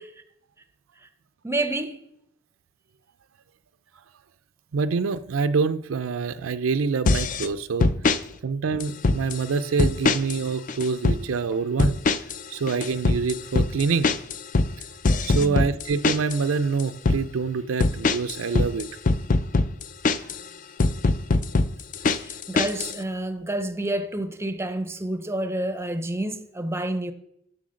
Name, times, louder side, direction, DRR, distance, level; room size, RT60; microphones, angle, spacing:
voice 1, 1.4-2.0 15.3-15.6 22.1-27.1, right 1 dB, 15° right, 0.6 m, -29 dB
voice 2, 4.7-7.9 8.4-12.0 12.5-14.1 15.2-18.9, right 5 dB, 75° right, 0.5 m, -26 dB
sound 1, 7.1-7.5 7.8-8.2 8.8-9.4 9.8-10.4 10.7-11.2 11.8-12.4 12.7-16.4 16.8-17.2 17.8-20.4 20.8-23.0, left 3 dB, 40° left, 0.4 m, -22 dB
7.7 x 6.2 x 6.3 m
head